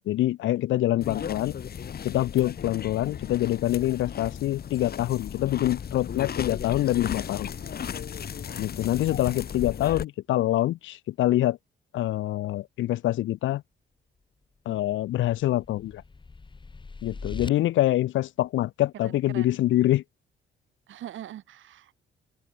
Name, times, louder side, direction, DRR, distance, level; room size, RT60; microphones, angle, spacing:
voice 1, 0.1-1.6 2.0-7.5 8.6-11.6 11.9-13.6 14.7-16.0 17.0-20.0, left 14 dB, 80° left, 0.8 m, -25 dB
sound 1, 1.0-10.0, left 8 dB, 50° left, 2.6 m, -35 dB
sound 2, 14.8-17.5, left 4 dB, 25° left, 1.8 m, -41 dB
voice 2, 19.0-19.6 20.9-22.0, right 12 dB, 75° right, 4.7 m, -43 dB
open air
cardioid pair, 90°, 20 cm